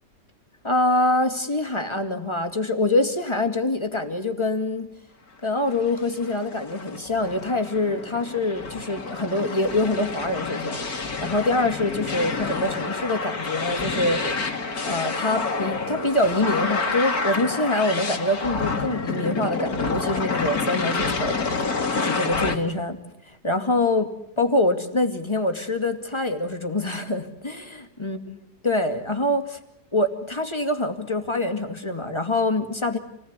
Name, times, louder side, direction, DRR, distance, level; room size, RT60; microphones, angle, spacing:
voice 1, 0.6-4.9 5.4-14.4 14.8-21.4 21.9-23.0 23.3-24.1 24.4-28.4 28.6-29.6 29.9-33.0, left 2 dB, 15° left, 6 dB, 2.4 m, -25 dB
sound 1, 5.7-22.6, left 4 dB, 55° left, 2.7 m, -28 dB
28.0 x 19.5 x 9.8 m, 0.81 s
omnidirectional pair, 1.9 m